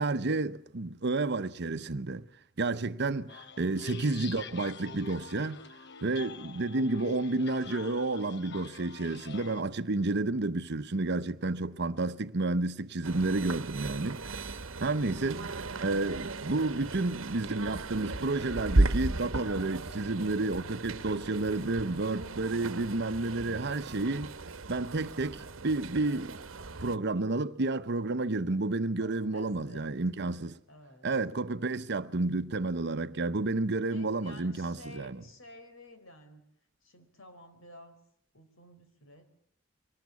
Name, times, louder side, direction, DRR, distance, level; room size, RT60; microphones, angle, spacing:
voice 1, 0.0-2.3 2.6-5.6 6.0-24.3 24.7-26.4 26.8-30.6 31.0-35.2, right 2 dB, 55° right, 0.9 m, -31 dB
sound 1, 3.3-9.6, left 5 dB, 55° left, 0.9 m, -45 dB
sound 2, 13.0-27.0, right 2 dB, 85° right, 1.1 m, -35 dB
voice 2, 29.0-30.3 30.7-31.1 33.9-36.4 36.8-38.0 38.3-39.3, left 1 dB, 85° left, 4.0 m, -52 dB
24.0 x 18.5 x 8.4 m
head